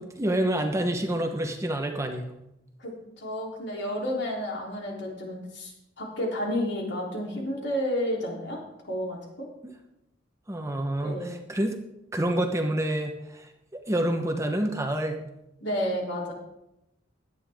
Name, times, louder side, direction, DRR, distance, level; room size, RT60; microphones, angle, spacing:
voice 1, 0.0-2.3 9.6-9.7 10.5-11.8 12.1-15.2, right 1 dB, 15° right, 4 dB, 1.0 m, -28 dB
voice 2, 2.8-8.6 8.8-9.5 11.0-11.4 15.6-16.3, equal, 65° left, -1 dB, 3.5 m, -31 dB
16.5 x 11.0 x 3.6 m, 0.88 s
head